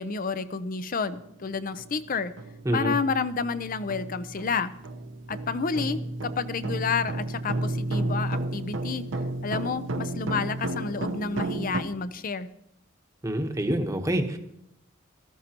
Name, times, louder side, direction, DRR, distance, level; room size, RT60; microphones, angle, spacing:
voice 1, 0.0-2.3 2.7-4.7 5.3-9.1 9.4-12.5, left 5 dB, 45° left, 13 dB, 0.5 m, -30 dB
sound 1, 1.2-1.3 1.8-2.0 2.4-11.8, right 2 dB, 65° right, 0.9 m, -32 dB
voice 2, 2.6-3.0 13.2-14.4, right 1 dB, 15° right, 5 dB, 1.0 m, -26 dB
17.5 x 13.5 x 2.9 m, 0.78 s
head